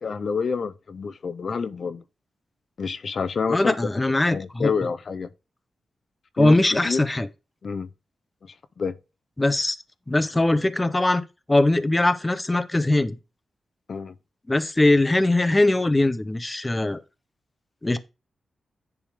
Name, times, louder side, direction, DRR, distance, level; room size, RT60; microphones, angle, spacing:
voice 1, 0.0-2.0 2.8-3.7 4.3-5.3 6.4-6.6 6.8-7.0 7.6-7.9 8.4-8.9 13.9-14.1, left 5 dB, 55° left, 0.6 m, -28 dB
voice 2, 3.5-4.7 6.4-7.3 9.4-9.8 10.1-11.2 11.5-13.2 14.5-17.0 17.8-18.0, left 2 dB, 20° left, 0.7 m, -21 dB
10.0 x 3.5 x 4.8 m
cardioid pair, 95°, 0 cm